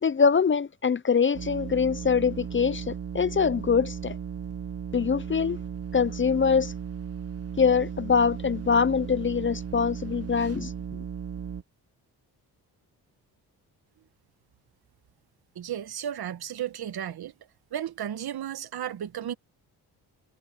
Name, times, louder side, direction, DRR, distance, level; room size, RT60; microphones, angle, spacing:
voice 1, 0.0-4.2 4.9-5.6 5.9-6.7 7.6-11.0, left 6 dB, 30° left, 0.6 m, -24 dB
sound 1, 1.3-11.6, right 8 dB, 35° right, 0.7 m, -36 dB
voice 2, 15.5-17.3 17.7-19.3, right 10 dB, 65° right, 1.4 m, -34 dB
cardioid pair, 60°, 40 cm